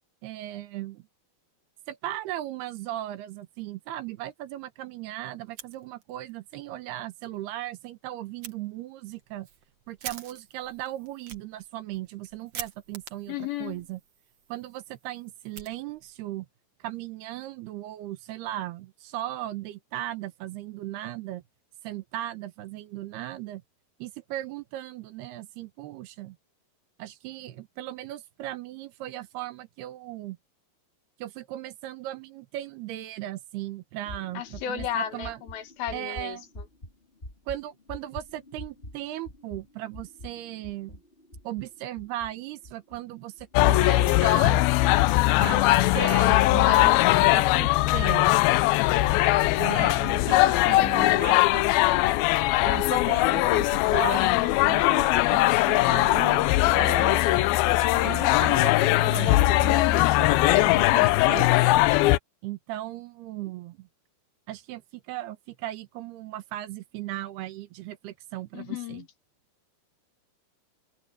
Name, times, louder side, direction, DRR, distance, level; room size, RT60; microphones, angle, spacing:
voice 1, 0.2-1.0 1.9-9.5 9.9-14.0 14.5-16.5 16.8-21.4 21.8-23.6 24.0-26.4 27.0-30.4 31.2-35.4 35.9-36.5 37.5-41.0 41.4-44.7 45.4-45.6 45.9-48.4 49.6-51.6 52.6-57.3 58.0-61.6 62.4-63.9 64.5-69.0, right 14 dB, 75° right, 3.0 m, -37 dB
Fire, 5.4-6.3 6.7-6.8 7.2-7.3 8.4-8.6 9.1-16.3, right 8 dB, 50° right, 2.1 m, -45 dB
voice 2, 13.3-13.8 34.3-36.4 51.5-51.9 68.5-69.1, left 10 dB, 70° left, 3.0 m, -34 dB
sound 1, 34.0-43.0 43.4-43.7 44.1-44.4, left 1 dB, 15° left, 3.9 m, -45 dB
sound 2, 43.6-62.2, left 18 dB, 85° left, 2.2 m, -21 dB
open air
omnidirectional pair, 4.9 m